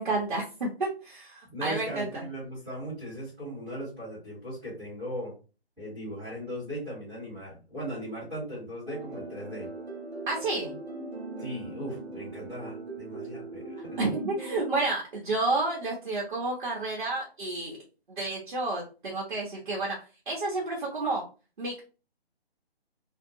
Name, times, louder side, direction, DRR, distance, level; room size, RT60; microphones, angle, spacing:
voice 1, 0.0-2.2 10.3-10.7 14.0-17.8 18.1-20.0 20.3-21.2 21.6-21.8, right 2 dB, 50° right, -3 dB, 0.9 m, -30 dB
voice 2, 1.5-5.3 5.8-9.7 11.4-14.0, equal, 5° right, -12 dB, 1.2 m, -38 dB
sound 1, 8.8-14.8, right 2 dB, 85° right, 1.1 m, -40 dB
2.7 x 2.2 x 2.6 m, 0.34 s
figure-of-eight pair, 145°, 32 cm